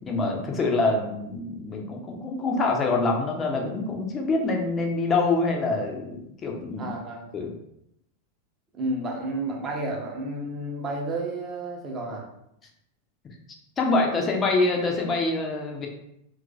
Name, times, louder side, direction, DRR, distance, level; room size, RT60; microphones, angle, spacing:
voice 1, 0.0-7.0 7.3-7.5 13.8-15.9, left 3 dB, 25° left, 1 dB, 0.5 m, -25 dB
voice 2, 6.8-7.3 8.7-12.3, right 2 dB, 25° right, -1 dB, 0.7 m, -31 dB
2.9 x 2.5 x 2.4 m, 0.79 s
figure-of-eight pair, 90°, 0 cm